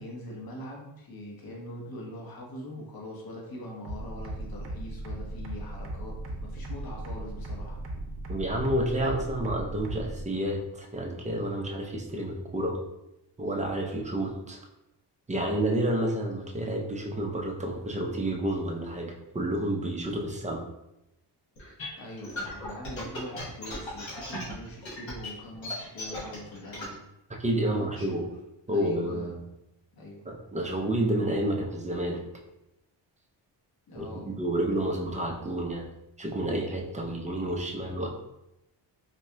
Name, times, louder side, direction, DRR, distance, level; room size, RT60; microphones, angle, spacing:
voice 1, 0.0-6.1 6.4-7.8 22.0-27.0 27.7-28.3 28.7-29.3 29.9-30.2 33.9-34.3, left 1 dB, 55° left, -2 dB, 1.0 m, -42 dB
sound 1, 3.8-10.2, right 1 dB, 60° right, 0.7 m, -38 dB
voice 2, 8.3-12.8 13.4-14.6 15.3-20.6 27.4-28.2 28.7-29.4 30.3-32.2 33.9-35.9 36.2-38.1, right 1 dB, 15° right, 0 dB, 0.4 m, -30 dB
sound 2, 21.6-26.9, left 1 dB, 85° left, 1.3 m, -37 dB
4.2 x 2.7 x 2.2 m, 0.88 s
cardioid pair, 110°, 44 cm